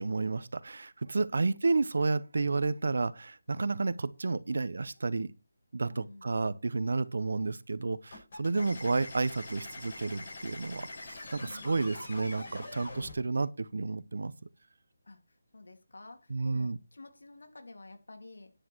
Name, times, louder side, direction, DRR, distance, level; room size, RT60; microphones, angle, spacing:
voice 1, 0.0-5.3 5.7-10.9 11.3-14.3 16.3-16.8, right 3 dB, 60° right, 0.9 m, -31 dB
voice 2, 5.9-6.5 11.4-11.9 15.0-18.5, left 2 dB, 85° left, 3.0 m, -51 dB
sound 1, 8.1-13.1, left 2 dB, 40° left, 6.5 m, -44 dB
10.0 x 8.3 x 4.6 m
hypercardioid pair, 175°, 0 cm